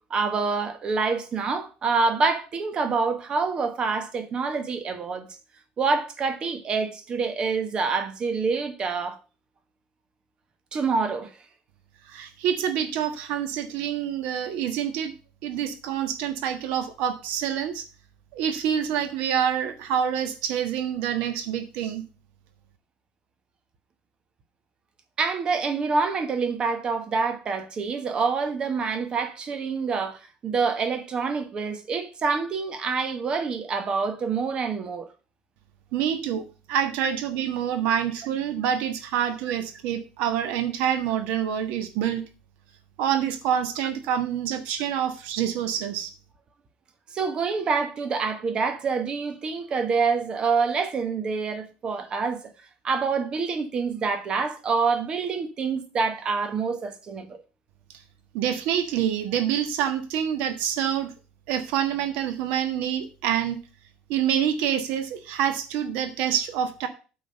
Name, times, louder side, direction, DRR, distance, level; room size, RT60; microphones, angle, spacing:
voice 1, 0.1-5.3 5.8-9.2 10.7-11.3 25.2-35.1 47.1-52.4 52.8-57.4, right 4 dB, 35° right, 1.2 m, -26 dB
voice 2, 12.1-15.1 15.4-17.8 18.3-22.0 35.9-42.2 43.0-46.1 58.3-61.1 61.5-63.6 64.1-66.9, right 9 dB, 85° right, 1.4 m, -27 dB
8.6 x 3.9 x 6.5 m
cardioid pair, 140°, 3 cm